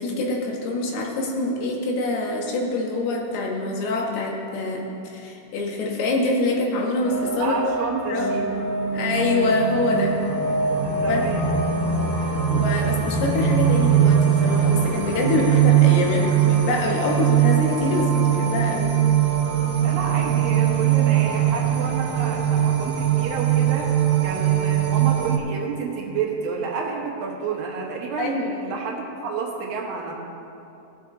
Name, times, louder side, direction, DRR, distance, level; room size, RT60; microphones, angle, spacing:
voice 1, 0.0-7.6 8.1-8.5 8.9-10.2 11.1-11.2 12.2-18.1 18.4-19.0 28.2-28.5, left 2 dB, 75° left, -1 dB, 3.1 m, -25 dB
sound 1, 7.0-24.9, equal, 60° left, 1.6 m, -29 dB
voice 2, 7.4-8.5 10.8-11.5 19.8-23.9 24.2-30.1, right 5 dB, 70° right, -1 dB, 2.6 m, -30 dB
sound 2, 9.2-25.4, right 12 dB, 90° right, 2.9 m, -21 dB
17.5 x 7.0 x 3.7 m, 2.8 s
omnidirectional pair, 4.5 m